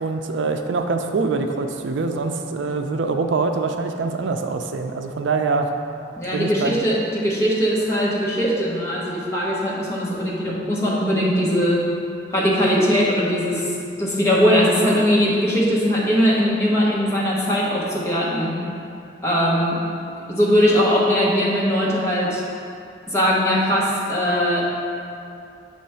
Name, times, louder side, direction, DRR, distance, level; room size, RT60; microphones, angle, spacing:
voice 1, 0.0-5.7 6.3-6.8, right 4 dB, 80° right, 5 dB, 0.4 m, -24 dB
voice 2, 6.2-11.8 12.3-13.7 14.0-18.6 19.2-19.8 20.3-22.4 23.1-24.7, equal, 15° left, -6 dB, 1.0 m, -20 dB
7.5 x 3.0 x 5.6 m, 2.5 s
head